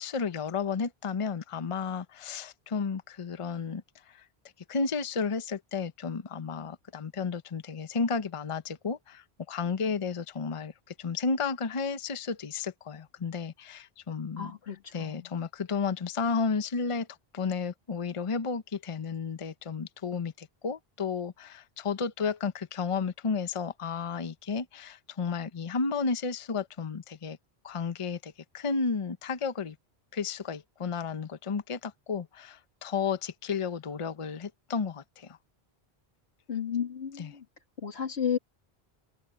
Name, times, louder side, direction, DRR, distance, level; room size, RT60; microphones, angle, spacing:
voice 1, 0.0-4.3 4.7-10.7 11.0-14.5 14.9-17.1 17.3-27.4 27.6-29.8 30.1-35.4 37.2-37.3, left 5 dB, 35° left, 0.8 m, -32 dB
voice 2, 14.4-15.3 36.5-37.5 37.8-38.4, left 8 dB, 85° left, 2.6 m, -33 dB
omnidirectional pair, 1.1 m